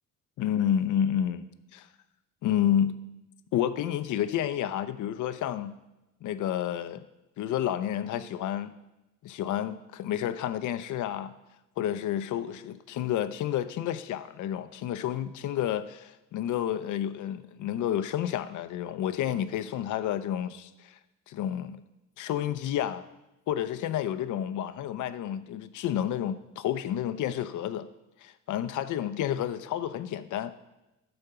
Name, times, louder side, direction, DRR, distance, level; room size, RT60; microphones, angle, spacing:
voice 1, 0.4-1.5 1.7-1.9 2.4-3.0 3.5-5.8 6.2-7.1 7.4-8.7 9.2-11.3 11.8-21.0 21.3-21.8 22.2-23.1 23.5-27.9 28.2-30.5, left 10 dB, 70° left, 12 dB, 0.7 m, -30 dB
12.0 x 4.4 x 6.9 m, 0.98 s
cardioid pair, 120°, 31 cm